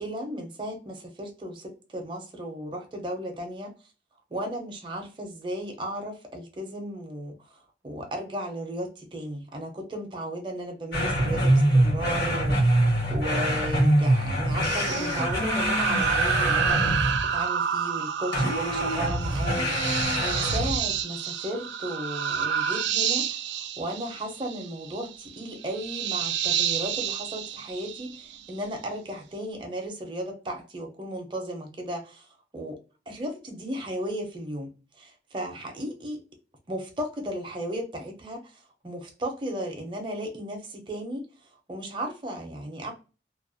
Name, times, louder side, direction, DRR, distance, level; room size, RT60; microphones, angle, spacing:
voice 1, 0.0-3.7 4.3-12.8 13.1-19.8 20.2-32.3 32.5-32.8 33.1-36.2 36.7-41.3 41.7-42.9, equal, 30° right, 0.5 m, -35 dB
sound 1, 10.9-17.4 18.3-20.9, right 1 dB, 65° left, 1.1 m, -24 dB
sound 2, 14.6-28.5, right 8 dB, 85° right, 0.3 m, -29 dB
2.3 x 2.1 x 2.4 m
head